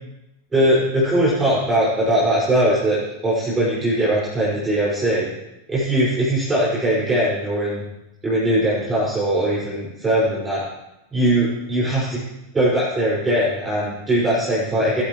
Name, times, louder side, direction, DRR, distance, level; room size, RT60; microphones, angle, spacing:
voice 1, 0.5-5.3 5.7-7.8 8.2-10.6 11.1-12.2 12.5-15.0, right 1 dB, 15° right, -8 dB, 5.8 m, -20 dB
18.0 x 12.0 x 3.2 m, 0.92 s
figure-of-eight pair, 90°, 0 cm